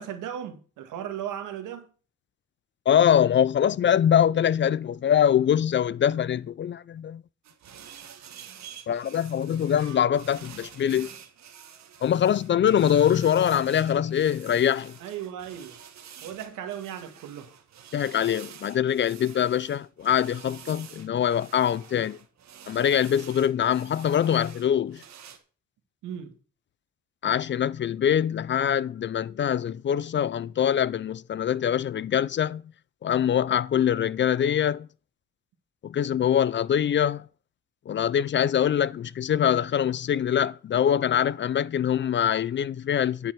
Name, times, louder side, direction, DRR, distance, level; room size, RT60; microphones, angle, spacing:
voice 1, 0.0-1.9 15.0-15.8 16.2-17.5 26.0-26.4, right 10 dB, 90° right, 1.9 m, -36 dB
voice 2, 2.9-7.2 8.9-11.1 12.0-15.0 17.9-22.2 22.7-25.0 27.2-32.6 33.0-34.9 35.8-37.3 37.9-43.3, left 9 dB, 40° left, 0.4 m, -23 dB
sound 1, 7.4-25.4, right 8 dB, 65° right, 1.7 m, -48 dB
10.5 x 5.7 x 6.0 m
cardioid pair, 90°, 30 cm